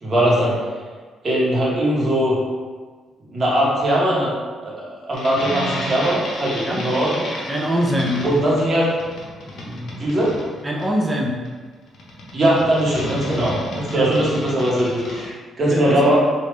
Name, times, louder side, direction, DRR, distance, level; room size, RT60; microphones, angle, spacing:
voice 1, 0.0-0.6 1.2-2.4 3.3-4.3 4.6-4.7 5.1-7.3 8.2-8.8 9.5-10.3 12.3-16.2, right 1 dB, 35° right, -6 dB, 1.2 m, -20 dB
sound 1, 5.1-15.2, left 1 dB, 65° left, 0.9 m, -32 dB
voice 2, 7.5-8.2 10.6-11.4 14.0-14.1 15.7-16.0, equal, 15° right, -1 dB, 0.5 m, -23 dB
3.3 x 2.7 x 3.2 m, 1.4 s
cardioid pair, 90°, 0 cm